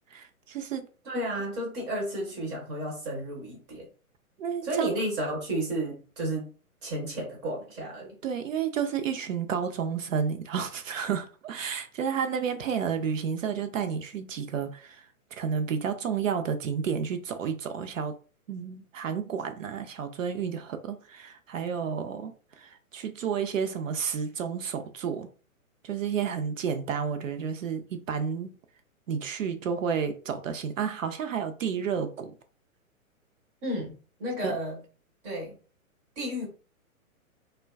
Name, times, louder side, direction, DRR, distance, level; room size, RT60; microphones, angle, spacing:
voice 1, 0.1-0.9 4.4-4.9 8.2-15.1 15.3-18.1 18.5-25.3 25.8-28.5 29.1-32.3 34.4-34.6, right 7 dB, 65° right, 0.5 m, -31 dB
voice 2, 1.0-3.9 4.6-6.5 6.8-8.1 33.6-34.8 35.2-35.6 36.2-36.5, right 1 dB, 15° right, 0.4 m, -32 dB
2.4 x 2.2 x 2.3 m
figure-of-eight pair, 125°, 43 cm